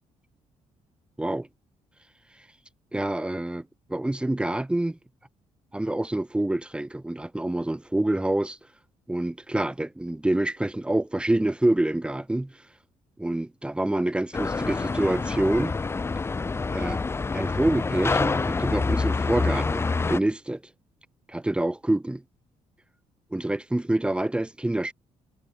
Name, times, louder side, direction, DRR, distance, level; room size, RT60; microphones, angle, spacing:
voice 1, 2.9-5.0 5.7-8.6 9.1-12.5 13.2-15.7 16.7-17.0 17.3-20.6 21.3-22.2 23.3-24.9, right 1 dB, 10° right, 2.4 m, -26 dB
sound 1, 14.3-20.2, left 4 dB, 20° left, 1.1 m, -27 dB
cardioid pair, 135°, 12 cm